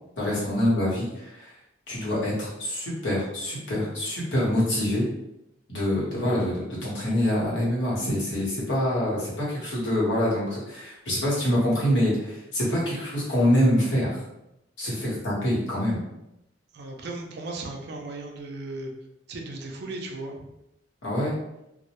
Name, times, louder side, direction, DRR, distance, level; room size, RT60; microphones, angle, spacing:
voice 1, 0.2-1.6 1.9-5.0 5.7-14.2 14.8-16.0 21.0-21.3, left 1 dB, 75° left, -6 dB, 1.0 m, -25 dB
voice 2, 16.7-18.9 19.3-20.4, right 2 dB, 60° right, 1 dB, 0.4 m, -36 dB
2.2 x 2.1 x 2.8 m, 0.87 s
head